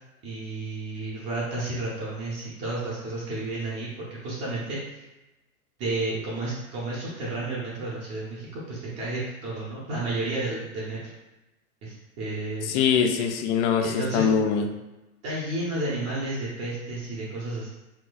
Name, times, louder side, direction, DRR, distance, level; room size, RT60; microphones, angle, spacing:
voice 1, 0.2-5.0 5.8-11.1 11.8-12.7 13.8-14.3 15.2-17.7, right 2 dB, 35° right, -6 dB, 0.8 m, -32 dB
voice 2, 12.7-14.7, left 7 dB, 55° left, 5 dB, 0.5 m, -23 dB
4.3 x 2.2 x 2.3 m, 1.0 s
hypercardioid pair, 125°, 44 cm